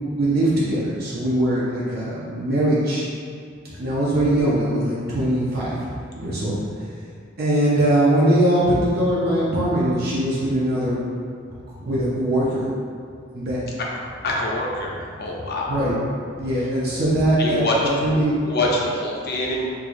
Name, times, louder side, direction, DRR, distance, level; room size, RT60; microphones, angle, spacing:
voice 1, 0.1-3.0 3.8-5.7 6.2-6.5 7.4-11.0 11.8-12.6 13.3-13.6 15.7-15.9 16.4-18.4, right 1 dB, 50° right, -8 dB, 0.6 m, -21 dB
voice 2, 14.2-15.7 17.4-17.8 18.5-19.7, left 1 dB, 55° left, -2 dB, 0.6 m, -25 dB
4.5 x 2.4 x 2.5 m, 2.2 s
head